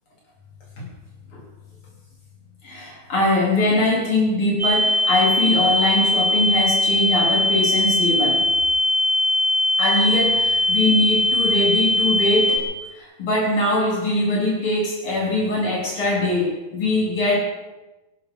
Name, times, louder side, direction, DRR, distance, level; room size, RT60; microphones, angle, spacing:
voice 1, 2.6-8.5 9.8-12.6 12.9-17.4, left 1 dB, 90° left, -3 dB, 4.8 m, -22 dB
sound 1, 4.6-12.6, left 1 dB, 35° right, 4.5 m, -20 dB
22.5 x 12.5 x 4.9 m, 1.0 s
omnidirectional pair, 2.3 m